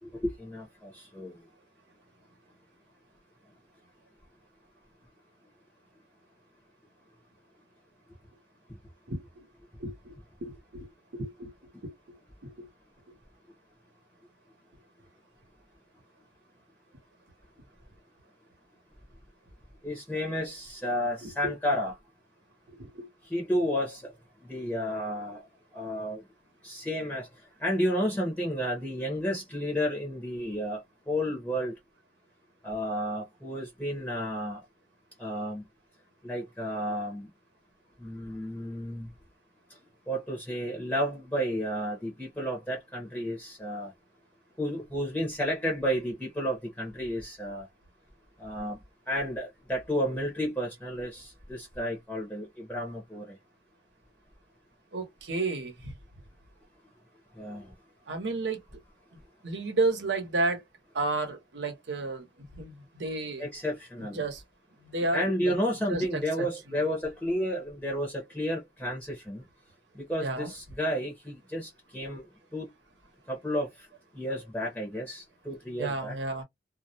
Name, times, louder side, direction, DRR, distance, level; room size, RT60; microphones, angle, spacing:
voice 1, 0.0-1.4 19.8-21.9 23.3-24.1 24.4-25.4 25.7-26.2 26.6-27.3 27.6-31.8 32.6-34.6 35.2-35.6 36.2-37.3 38.0-39.1 40.1-43.9 44.6-47.7 48.4-48.8 49.1-53.4 57.4-57.7 63.4-64.2 65.1-69.4 69.9-72.2 72.5-72.7 73.3-73.7 74.1-76.1, equal, 10° left, 0.7 m, -32 dB
voice 2, 9.1-9.5 9.8-11.5 11.8-12.2 12.4-12.7 21.2-21.5 22.7-23.1 54.9-55.9 58.1-58.6 59.4-60.6 60.9-62.3 62.5-63.5 64.1-64.4 64.8-65.5 65.9-66.8 70.2-70.5 75.8-76.4, right 3 dB, 85° right, 0.9 m, -32 dB
2.3 x 2.1 x 2.6 m
head